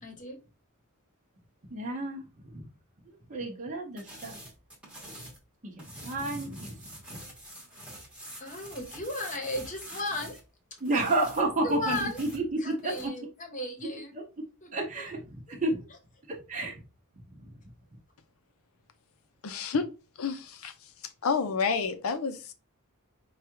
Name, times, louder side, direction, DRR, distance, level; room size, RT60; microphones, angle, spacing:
voice 1, 0.0-0.4 8.4-10.4 11.4-12.2 12.6-14.1 14.6-14.7, left 2 dB, 35° left, 1.0 m, -35 dB
voice 2, 1.7-2.2 2.5-2.6 3.3-4.4 5.6-7.2 10.8-13.1 14.7-15.8 16.3-16.8 17.3-17.4, right 2 dB, 35° right, 0.8 m, -31 dB
sound 1, 4.0-5.4 5.8-10.4 10.8-13.1, right 1 dB, 5° right, 1.0 m, -46 dB
voice 3, 19.4-19.9 20.2-20.7 21.2-22.5, left 5 dB, 70° left, 0.6 m, -29 dB
4.7 x 2.3 x 2.9 m
head